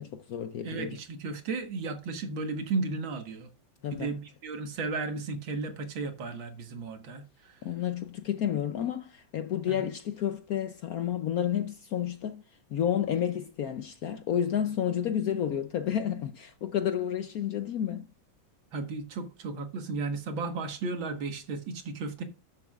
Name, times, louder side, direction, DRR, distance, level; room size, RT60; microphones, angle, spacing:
voice 1, 0.0-1.0 3.8-4.2 7.6-12.4 12.7-18.1, left 9 dB, 65° left, 0.9 m, -30 dB
voice 2, 0.6-3.5 3.9-7.6 9.7-9.9 18.7-22.2, right 3 dB, 80° right, 2.2 m, -34 dB
13.0 x 7.1 x 2.4 m
omnidirectional pair, 2.1 m